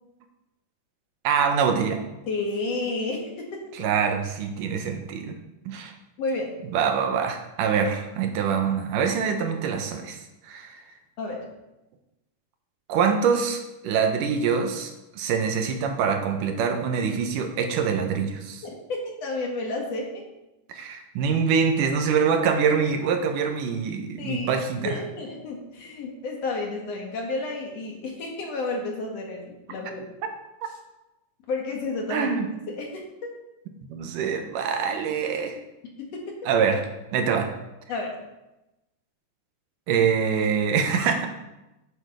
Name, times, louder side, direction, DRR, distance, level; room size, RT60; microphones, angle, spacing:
voice 1, 1.2-2.0 3.7-5.4 5.7-5.9 6.7-10.8 12.9-18.6 20.7-25.0 32.1-32.5 33.9-35.6 36.5-36.8 37.1-37.5 39.9-41.3, right 6 dB, 90° right, 5 dB, 2.6 m, -24 dB
voice 2, 2.3-3.6 6.2-6.5 11.2-11.5 18.6-20.1 24.2-24.5 24.8-30.1 31.5-32.3 32.7-33.3 36.0-36.4 37.9-38.2, left 3 dB, 55° left, 0 dB, 2.4 m, -31 dB
10.5 x 6.6 x 5.1 m, 0.97 s
omnidirectional pair, 3.7 m